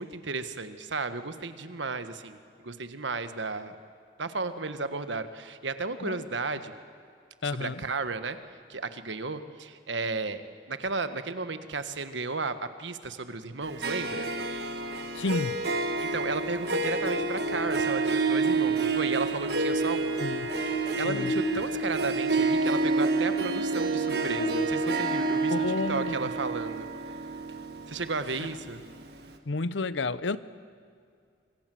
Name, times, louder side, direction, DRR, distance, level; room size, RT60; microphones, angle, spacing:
voice 1, 0.0-3.8 4.2-6.7 7.4-8.4 8.7-10.4 10.7-14.3 16.0-20.2 20.6-25.5 25.9-26.9 27.9-28.8, right 3 dB, 85° right, 10 dB, 1.4 m, -34 dB
voice 2, 7.4-7.8 15.1-15.6 20.2-20.5 21.0-21.3 25.5-26.3 29.5-30.4, left 3 dB, 85° left, 16 dB, 0.8 m, -31 dB
Harp, 13.6-29.0, right 3 dB, 60° right, 1.7 m, -29 dB
Buzz, 17.0-26.4, right 1 dB, 40° left, 4.5 m, -37 dB
25.5 x 25.0 x 7.8 m, 2.2 s
head